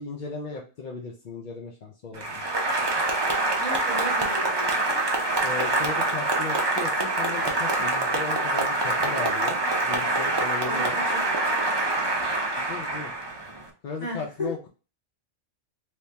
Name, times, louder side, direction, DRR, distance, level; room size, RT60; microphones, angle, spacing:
voice 1, 0.0-2.2 5.4-11.0 12.5-13.1 13.8-14.7, left 4 dB, 55° left, 0 dB, 0.5 m, -36 dB
Applause, 2.1-13.7, right 2 dB, 40° right, 0.3 m, -25 dB
voice 2, 3.6-5.0 10.6-11.4 14.0-14.5, equal, 30° left, -4 dB, 1.8 m, -35 dB
3.4 x 3.0 x 2.7 m, 0.35 s
omnidirectional pair, 1.4 m